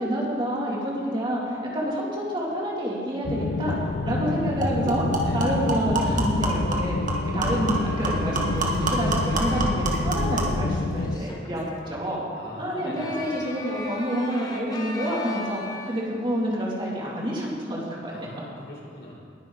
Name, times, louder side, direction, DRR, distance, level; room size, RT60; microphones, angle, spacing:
voice 1, 0.0-12.2 12.6-18.1, equal, 30° right, -4 dB, 2.9 m, -28 dB
sound 1, 3.2-11.2, left 3 dB, 65° left, 0.5 m, -28 dB
sound 2, 3.7-3.8 4.1-4.2 4.6-10.6, right 1 dB, 50° right, 1.7 m, -27 dB
sound 3, 7.2-9.8 11.0-11.9 12.9-16.2, left 2 dB, 20° left, 1.3 m, -39 dB
voice 2, 12.4-13.2 18.1-19.1, left 1 dB, 85° left, -3 dB, 4.0 m, -41 dB
20.0 x 10.0 x 4.1 m, 2.1 s
head